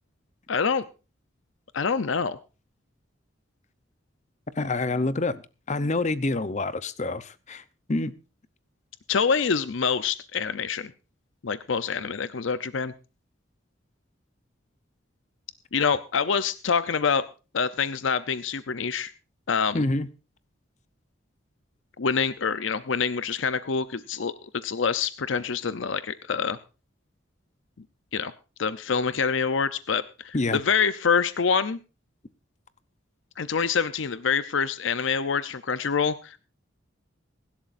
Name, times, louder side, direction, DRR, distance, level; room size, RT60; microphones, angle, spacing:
voice 1, 0.5-0.8 1.7-2.4 9.1-10.9 11.4-12.9 15.7-17.2 17.5-19.1 19.5-19.9 22.0-26.6 28.1-28.3 28.6-31.8 33.4-36.4, left 6 dB, 75° left, 0.6 m, -26 dB
voice 2, 4.6-5.4 5.7-7.6 7.9-8.1 19.7-20.1 30.3-30.6, left 2 dB, 35° left, 0.7 m, -27 dB
23.5 x 12.0 x 2.6 m
head